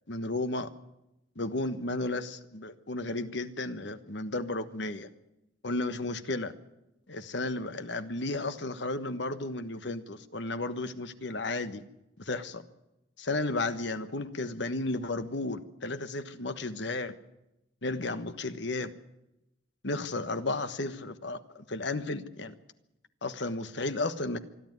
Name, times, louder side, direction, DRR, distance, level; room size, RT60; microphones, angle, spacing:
voice 1, 0.1-0.7 1.3-5.1 5.6-6.5 7.1-11.8 12.2-12.6 13.2-17.1 17.8-18.9 19.8-22.5 23.2-24.4, left 2 dB, 60° left, 11 dB, 1.3 m, -33 dB
25.5 x 12.0 x 9.4 m, 0.91 s
head